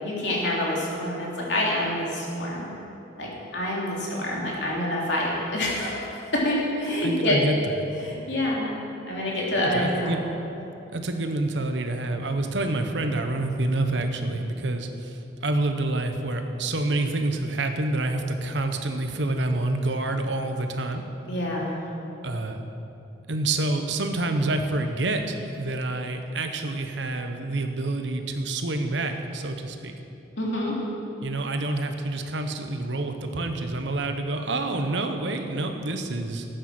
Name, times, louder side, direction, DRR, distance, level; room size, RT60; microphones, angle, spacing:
voice 1, 0.0-2.7 3.2-7.4 8.0-8.8 9.1-10.1 21.3-21.8 30.4-30.7, left 1 dB, 75° left, -4 dB, 3.0 m, -27 dB
voice 2, 7.0-8.0 9.7-10.2 10.9-21.0 22.2-22.6 23.3-29.9 31.2-36.5, right 2 dB, 75° right, 6 dB, 1.0 m, -27 dB
13.0 x 9.2 x 6.1 m, 2.8 s
head